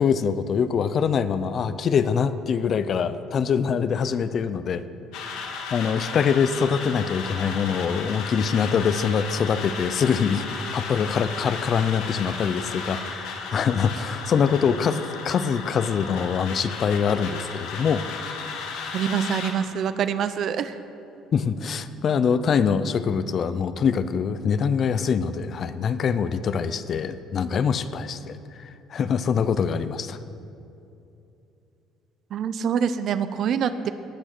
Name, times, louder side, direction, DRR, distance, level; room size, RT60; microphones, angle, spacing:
voice 1, 0.0-4.8 5.4-18.0 19.2-19.4 21.3-30.2, left 6 dB, 35° left, 13 dB, 0.5 m, -24 dB
sound 1, 5.1-19.5, left 5 dB, 85° left, 1.9 m, -34 dB
voice 2, 18.9-20.7 32.3-33.9, right 8 dB, 45° right, 12 dB, 0.6 m, -25 dB
18.5 x 6.3 x 6.7 m, 2.8 s
cardioid pair, 165°, 0 cm